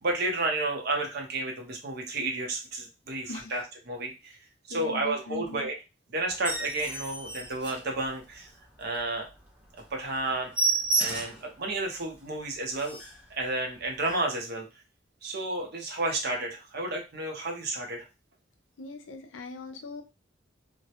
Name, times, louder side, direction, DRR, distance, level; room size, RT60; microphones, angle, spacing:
voice 1, 0.0-4.4 4.7-5.8 6.1-8.5 8.8-9.3 9.9-10.5 11.0-13.0 13.3-14.7 15.2-18.1, right 2 dB, 55° right, 2 dB, 0.7 m, -31 dB
voice 2, 4.7-5.7 18.8-20.0, left 2 dB, 85° left, 6 dB, 0.5 m, -40 dB
sound 1, 6.3-8.4 8.9-9.0 9.4-9.5 9.8-9.9 10.2-11.5 12.0-12.1 12.4-12.5 12.7-13.2 14.0-14.2, right 3 dB, 5° right, 0.7 m, -31 dB
2.1 x 2.0 x 2.8 m, 0.27 s
head